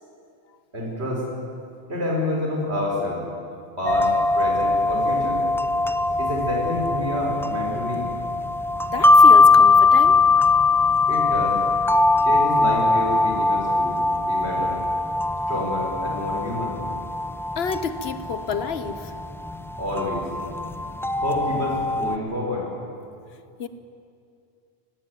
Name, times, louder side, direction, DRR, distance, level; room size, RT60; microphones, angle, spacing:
voice 1, 0.7-1.3 1.9-3.2 3.8-5.4 6.2-8.1 11.1-11.6 12.2-14.8 15.5-16.8 19.8-20.3 21.2-22.7, left 1 dB, 80° right, -2 dB, 5.1 m, -28 dB
sound 1, 3.8-22.2, left 3 dB, 5° left, 0.5 m, -21 dB
voice 2, 8.9-10.2 17.6-19.1 23.6-23.7, left 6 dB, 70° left, 12 dB, 1.2 m, -29 dB
18.5 x 16.5 x 9.1 m, 2.4 s
omnidirectional pair, 1.1 m